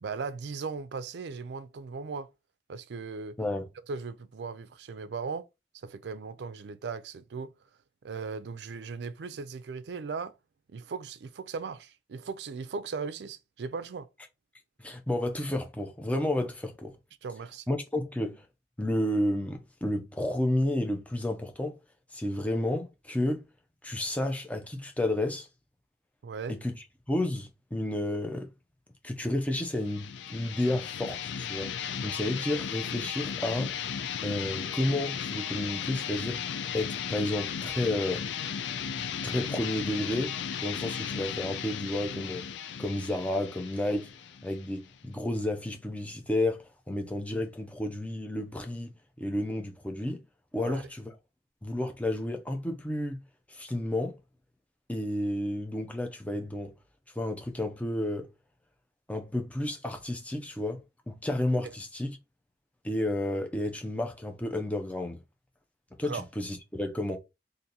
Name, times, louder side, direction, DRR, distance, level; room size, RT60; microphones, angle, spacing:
voice 1, 0.0-2.3 2.7-3.4 3.9-5.5 5.7-7.5 8.0-10.3 10.7-14.1 17.2-17.7 26.2-26.6 50.6-50.8 66.0-66.2, right 5 dB, 70° right, 0.4 m, -38 dB
voice 2, 3.4-3.7 14.8-16.9 17.7-18.5 18.8-21.8 22.1-23.4 23.8-25.5 26.5-26.8 27.1-28.5 29.0-31.7 32.0-33.8 34.2-36.4 36.7-38.2 39.2-40.3 40.6-42.5 42.8-44.1 44.4-48.9 49.2-50.2 50.5-51.1 51.6-53.2 53.5-54.2 54.9-56.7 57.2-58.3 59.1-60.8 61.1-62.2 62.8-65.2 66.0-67.2, left 1 dB, 10° left, 0.5 m, -31 dB
sound 1, 29.7-45.1, left 7 dB, 85° left, 0.4 m, -36 dB
2.8 x 2.6 x 3.8 m
head